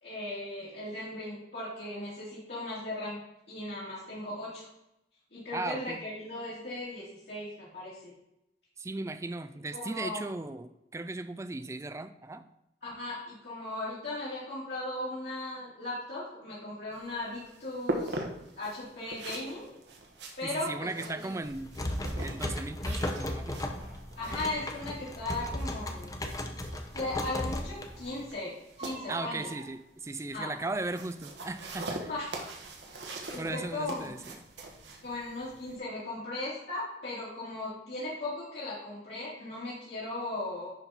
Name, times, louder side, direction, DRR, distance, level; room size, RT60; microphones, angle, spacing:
voice 1, 0.0-3.2 3.5-4.7 5.3-8.1 9.7-10.2 12.8-18.2 18.5-19.7 20.4-21.3 24.2-26.2 26.9-28.5 28.8-29.5 30.3-30.5 32.1-32.2 33.1-34.1 35.0-40.7, left 2 dB, 65° left, -10 dB, 3.0 m, -37 dB
voice 2, 5.5-6.0 8.8-12.5 20.4-21.7 22.2-23.7 29.1-32.1 33.4-34.4, right 2 dB, 15° right, 11 dB, 0.3 m, -37 dB
sound 1, 16.9-35.8, right 2 dB, 80° right, 1.3 m, -43 dB
sound 2, 21.4-28.3, left 1 dB, 20° left, 0.7 m, -35 dB
Crying sobbing, 22.2-22.3 24.8-25.0 26.6-26.7 27.2-27.3 27.5-27.6 28.6-29.7 30.7-31.0 31.6-31.7, right 3 dB, 35° right, 1.2 m, -45 dB
10.5 x 4.2 x 4.4 m, 0.85 s
head